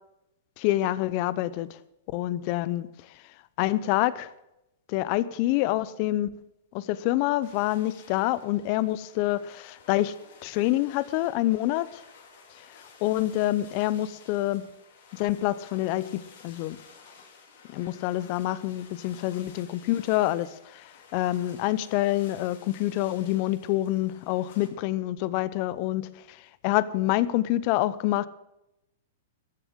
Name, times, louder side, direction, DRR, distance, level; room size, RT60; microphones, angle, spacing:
voice 1, 0.6-1.7 2.1-2.9 3.6-4.3 4.9-6.3 6.7-10.1 10.4-12.0 13.0-14.7 15.1-16.8 17.7-28.3, left 15 dB, 45° left, 17 dB, 0.7 m, -27 dB
sound 1, 7.4-24.7, left 5 dB, 65° left, 3.7 m, -53 dB
14.5 x 7.2 x 7.8 m, 0.87 s
hypercardioid pair, 135°, 0 cm